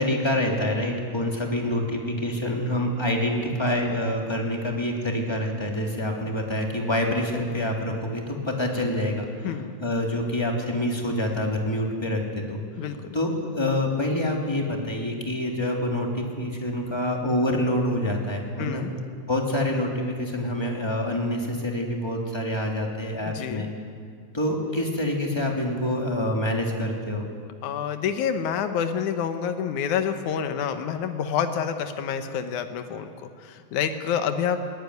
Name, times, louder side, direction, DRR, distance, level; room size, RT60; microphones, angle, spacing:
voice 1, 0.0-9.5 9.8-12.6 13.1-18.8 19.3-23.7 24.3-27.3, left 1 dB, 10° left, 0 dB, 2.7 m, -26 dB
voice 2, 9.4-9.8 12.8-13.2 18.6-18.9 23.3-23.7 27.6-34.6, left 8 dB, 80° left, 8 dB, 2.6 m, -28 dB
21.5 x 17.5 x 9.6 m, 2.1 s
omnidirectional pair, 3.4 m